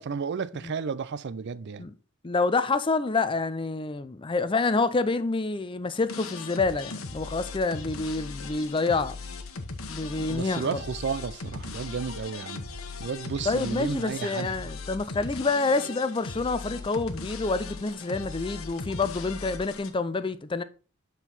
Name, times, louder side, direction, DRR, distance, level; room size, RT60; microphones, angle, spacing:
voice 1, 0.0-1.8 10.3-12.7 13.0-14.5, right 5 dB, 55° right, 0.4 m, -32 dB
voice 2, 2.2-9.2 9.9-10.8 13.4-20.6, left 3 dB, 25° left, 0.4 m, -27 dB
sound 1, 6.1-19.9, left 4 dB, 70° left, 1.0 m, -38 dB
7.8 x 4.5 x 4.0 m
head